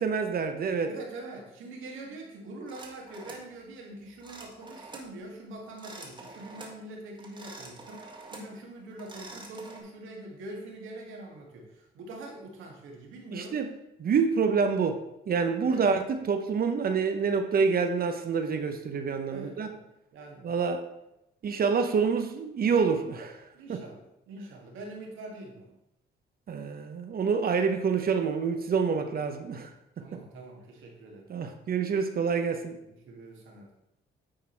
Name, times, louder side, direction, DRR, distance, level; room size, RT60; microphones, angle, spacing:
voice 1, 0.0-0.9 13.3-13.7 14.0-15.0 15.3-19.7 20.4-20.8 21.4-23.4 23.7-23.8 26.5-29.7 30.0-30.1 31.3-32.8, right 5 dB, 50° right, 7 dB, 0.8 m, -27 dB
voice 2, 0.9-13.6 15.7-15.9 19.3-19.8 20.1-20.5 23.5-25.8 29.5-29.7 30.0-31.3 32.9-33.7, right 2 dB, 85° right, 0 dB, 2.0 m, -44 dB
sound 1, 2.7-3.5 4.2-5.1 5.7-6.8 7.2-8.5 8.9-9.8, right 2 dB, 25° right, 1.8 m, -46 dB
9.7 x 3.9 x 4.5 m, 0.85 s
cardioid pair, 90°, 20 cm